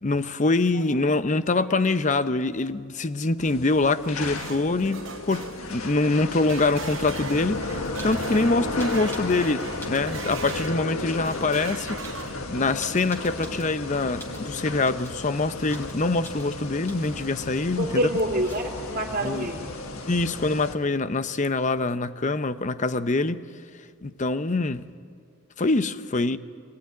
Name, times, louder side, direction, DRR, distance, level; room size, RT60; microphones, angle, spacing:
voice 1, 0.0-12.0 12.5-18.0 19.2-19.5 20.1-23.5 24.0-24.9 25.6-26.4, left 3 dB, 35° left, 0.7 m, -25 dB
sound 1, 3.4-20.7, left 2 dB, 80° left, 1.7 m, -34 dB
sound 2, 3.8-10.8 11.2-12.6, right 7 dB, 60° right, 0.9 m, -41 dB
sound 3, 8.0-8.3 8.8-9.4 9.7-10.8 11.3-11.6 12.0-13.8 14.2-14.5 14.8-15.2 15.7-16.0 16.2-16.5 16.9-17.2 18.2-18.9 20.7-20.8 21.0-21.6, equal, 10° left, 3.3 m, -46 dB
voice 2, 17.8-19.7, right 1 dB, 40° right, 2.8 m, -27 dB
23.5 x 19.0 x 9.4 m
head